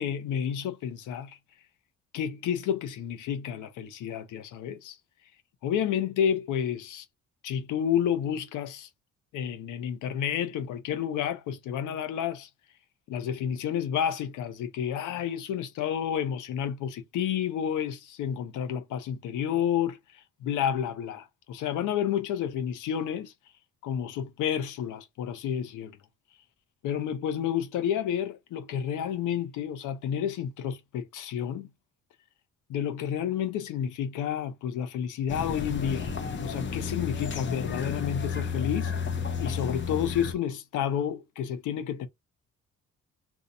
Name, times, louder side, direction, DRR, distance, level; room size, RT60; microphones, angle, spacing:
voice 1, 0.0-1.4 2.1-5.0 5.6-7.0 7.4-8.9 9.3-12.5 13.1-23.3 23.8-26.0 26.8-31.7 32.7-36.1 36.4-38.9 39.4-42.1, left 9 dB, 85° left, 0.7 m, -30 dB
sound 1, 35.3-40.3, left 6 dB, 40° left, 0.7 m, -32 dB
2.7 x 2.3 x 3.9 m
cardioid pair, 90°, 30 cm